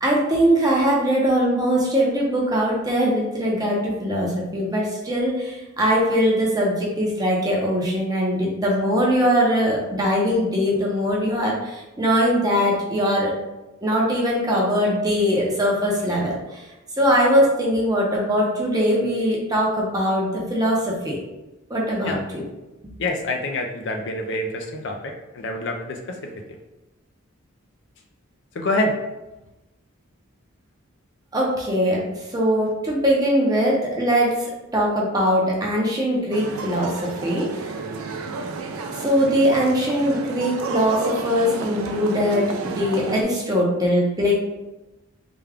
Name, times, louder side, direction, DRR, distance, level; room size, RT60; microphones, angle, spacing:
voice 1, 0.0-13.3 13.8-16.3 17.0-21.2 21.7-22.4 31.3-32.0 32.3-34.3 34.7-37.7 39.0-44.3, equal, 20° right, -3 dB, 0.7 m, -21 dB
voice 2, 23.0-26.6 28.5-28.9, left 1 dB, 60° left, 3 dB, 0.4 m, -27 dB
sound 1, 36.3-43.2, right 3 dB, 85° right, 0.4 m, -31 dB
3.4 x 2.3 x 3.4 m, 1.0 s
head